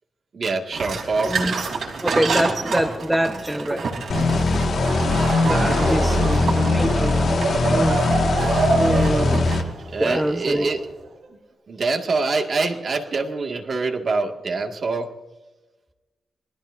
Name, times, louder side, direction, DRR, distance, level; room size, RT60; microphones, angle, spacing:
voice 1, 0.3-1.4 5.6-6.4 9.9-10.9 11.3-11.4 11.7-15.2, right 3 dB, 50° right, 3 dB, 2.0 m, -25 dB
sound 1, 0.7-10.3, right 4 dB, 70° right, 3.5 m, -29 dB
voice 2, 2.0-3.8 5.4-7.4 7.7-8.0 8.8-9.4 10.0-10.7, equal, 5° right, 5 dB, 0.9 m, -24 dB
sound 2, 4.1-9.6, left 3 dB, 60° left, 1.8 m, -20 dB
Laughter / Crowd, 4.7-11.1, right 3 dB, 85° right, 6.7 m, -26 dB
27.0 x 20.0 x 2.7 m, 1.1 s
wide cardioid pair, 160°, 0 cm